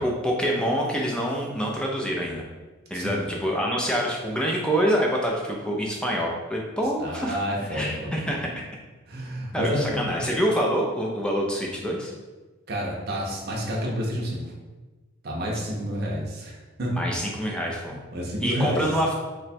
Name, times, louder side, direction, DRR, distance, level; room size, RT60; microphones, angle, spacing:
voice 1, 0.0-2.5 2.9-7.4 7.7-8.5 9.5-12.1 16.9-18.0 18.4-19.1, equal, 5° left, -1 dB, 0.4 m, -26 dB
voice 2, 2.9-3.3 7.0-8.2 9.1-10.2 12.7-14.4 15.2-17.0 17.9-19.0, equal, 50° right, -3 dB, 0.6 m, -29 dB
3.0 x 2.2 x 4.1 m, 1.3 s
head